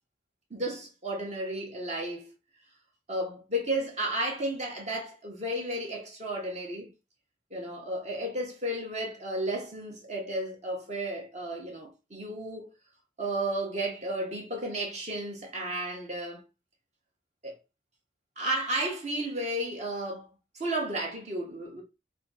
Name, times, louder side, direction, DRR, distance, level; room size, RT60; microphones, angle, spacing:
voice 1, 0.5-2.3 3.1-6.9 7.5-12.7 13.2-16.4 17.4-17.6 18.4-20.3 20.5-21.8, right 1 dB, 40° right, 1.1 m, -33 dB
3.7 x 2.7 x 4.0 m
head